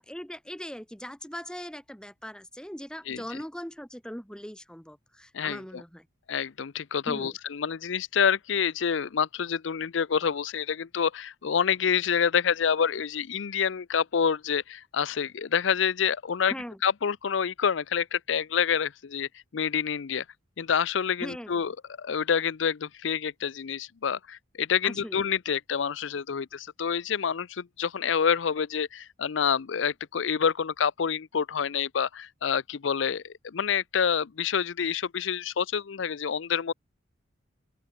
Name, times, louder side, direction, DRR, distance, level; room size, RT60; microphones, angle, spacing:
voice 1, 0.0-6.1 7.1-7.4 16.5-16.8 21.2-21.6 24.8-25.2, equal, 5° left, 3.2 m, -40 dB
voice 2, 5.3-5.8 6.3-16.5 16.8-20.2 20.6-21.7 22.0-36.7, left 7 dB, 80° left, 0.5 m, -27 dB
open air
head